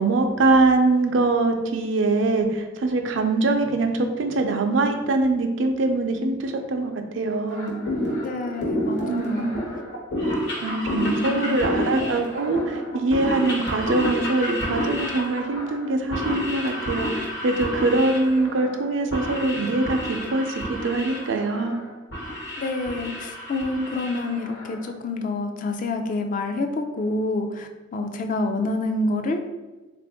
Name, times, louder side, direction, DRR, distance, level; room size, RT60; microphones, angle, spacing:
voice 1, 0.0-7.7 9.1-9.4 10.6-21.7, right 2 dB, 90° right, 5 dB, 0.5 m, -23 dB
sound 1, 7.5-24.9, equal, 65° left, 1.0 m, -30 dB
voice 2, 8.2-9.6 11.2-12.0 22.6-29.4, left 2 dB, 45° left, 5 dB, 0.4 m, -28 dB
3.6 x 2.5 x 3.4 m, 1.2 s
head